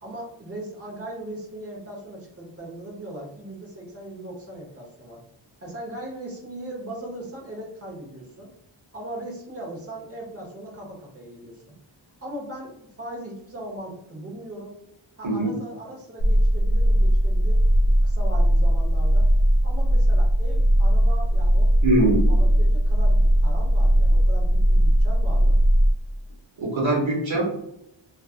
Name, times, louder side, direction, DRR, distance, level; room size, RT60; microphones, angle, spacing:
voice 1, 0.0-5.2 5.6-8.5 8.9-11.7 12.2-14.8 15.2-19.3 19.6-21.7 22.3-25.6, right 1 dB, 30° right, -3 dB, 0.9 m, -39 dB
voice 2, 15.2-15.6 21.8-22.3 26.6-27.4, right 1 dB, 70° right, -4 dB, 1.0 m, -22 dB
sound 1, 16.2-25.9, equal, 50° left, 0.7 m, -19 dB
2.5 x 2.4 x 2.4 m, 0.79 s
wide cardioid pair, 55°, 48 cm